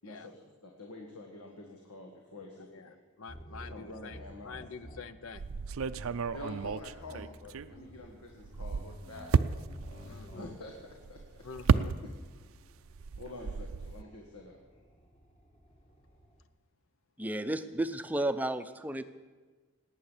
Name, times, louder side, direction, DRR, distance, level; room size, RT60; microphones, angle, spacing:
voice 1, 0.0-2.9 3.7-4.6 6.3-9.6 10.0-10.7 11.1-11.6 13.2-14.6, left 2 dB, 90° left, 1 dB, 1.7 m, -47 dB
voice 2, 2.6-5.4 10.1-10.5 11.4-12.0, left 5 dB, 65° left, 13 dB, 0.7 m, -46 dB
sound 1, 3.3-16.4, equal, 30° left, 1.6 m, -53 dB
sound 2, 5.3-8.0 8.4-12.5 12.7-14.0, right 5 dB, 70° right, 0.4 m, -32 dB
voice 3, 17.2-19.0, right 1 dB, 5° right, 10 dB, 0.5 m, -32 dB
18.5 x 9.1 x 7.3 m, 1.4 s
head